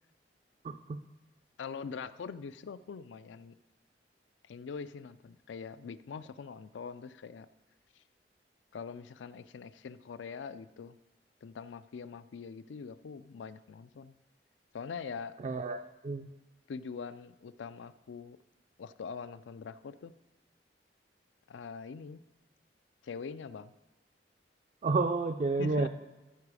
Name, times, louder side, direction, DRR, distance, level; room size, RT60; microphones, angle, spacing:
voice 1, 0.6-1.0 15.4-16.3 24.8-25.9, right 3 dB, 35° right, 7 dB, 0.3 m, -30 dB
voice 2, 1.6-3.5 4.5-7.5 8.7-11.0 11.4-14.1 14.7-15.3 16.7-18.4 18.8-20.1 21.5-22.2 23.0-23.7 25.6-25.9, left 5 dB, 85° left, 15 dB, 0.4 m, -43 dB
14.0 x 4.8 x 4.8 m, 1.1 s
head